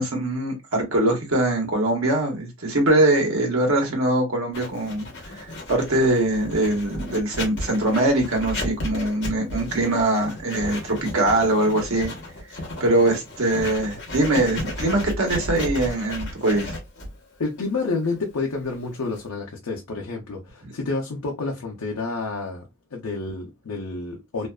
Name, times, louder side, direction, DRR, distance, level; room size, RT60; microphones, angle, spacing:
voice 1, 0.0-5.1 5.4-12.1 12.8-16.7, right 1 dB, 70° right, 1.0 m, -22 dB
Writing, 4.5-19.3, left 1 dB, 55° left, 1.0 m, -34 dB
voice 2, 17.4-24.5, left 3 dB, 90° left, 0.6 m, -29 dB
2.5 x 2.4 x 2.2 m
head